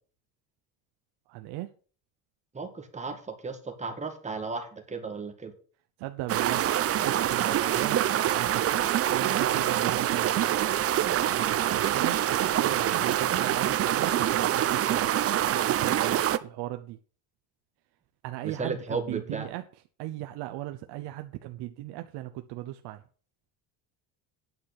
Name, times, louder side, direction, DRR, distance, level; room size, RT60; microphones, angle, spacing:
voice 1, 1.3-1.7 6.0-6.7 7.0-8.0 8.3-8.8 9.1-10.4 11.2-12.2 12.6-15.1 15.5-17.0 18.2-19.6 20.0-23.0, right 16 dB, 80° right, 0.8 m, -37 dB
voice 2, 2.5-5.5 7.4-8.1 18.4-19.5, right 4 dB, 15° right, 1.8 m, -35 dB
sound 1, 6.3-16.4, right 11 dB, 35° right, 0.6 m, -25 dB
9.4 x 5.8 x 8.1 m
cardioid pair, 145°, 39 cm